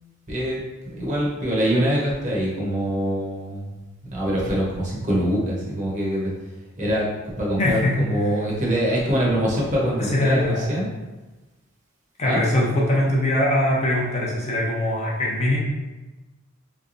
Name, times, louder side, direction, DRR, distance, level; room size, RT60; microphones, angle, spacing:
voice 1, 0.3-0.6 1.0-3.7 4.1-6.3 6.8-7.1 7.4-10.9 12.2-12.5, equal, 35° right, -5 dB, 0.9 m, -24 dB
voice 2, 7.6-8.1 10.0-10.9 12.2-15.6, left 1 dB, 30° left, -4 dB, 0.6 m, -22 dB
3.4 x 3.2 x 2.6 m, 1.1 s
head